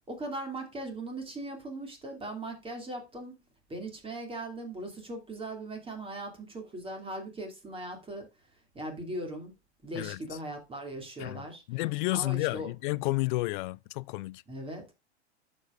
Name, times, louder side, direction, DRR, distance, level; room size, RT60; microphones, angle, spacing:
voice 1, 0.1-3.4 3.7-8.3 8.7-9.5 9.8-12.7 14.5-14.8, right 1 dB, 15° right, 2.7 m, -39 dB
voice 2, 11.2-14.4, left 21 dB, 45° left, 0.4 m, -31 dB
12.5 x 5.3 x 2.5 m
hypercardioid pair, 105°, 34 cm